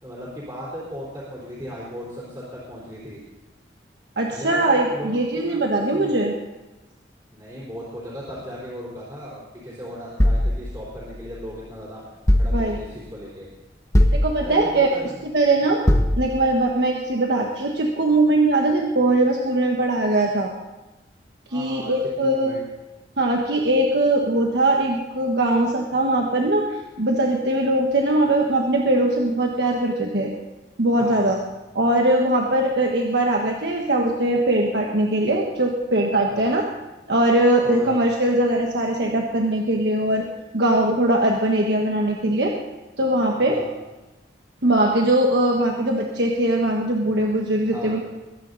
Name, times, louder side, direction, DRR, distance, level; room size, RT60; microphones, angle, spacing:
voice 1, 0.0-3.2 4.3-5.6 5.9-6.2 7.3-12.0 12.3-13.5 14.4-15.3 21.5-21.9 22.2-22.6 30.9-31.5 36.3-36.6 37.6-38.0 43.4-43.7 47.7-48.0, equal, 20° right, -7 dB, 3.7 m, -36 dB
voice 2, 4.2-6.3 12.5-12.8 14.1-14.9 15.3-15.8 16.2-20.5 21.5-22.5 23.2-30.3 30.8-31.4 31.7-36.6 37.1-40.2 40.5-42.5 43.0-43.6 44.6-48.3, right 1 dB, 70° right, 0 dB, 1.4 m, -21 dB
sound 1, 10.2-11.6 12.3-13.1 13.9-14.8 15.9-16.7, left 1 dB, 15° left, 1.1 m, -21 dB
22.0 x 9.7 x 4.0 m, 1.1 s
head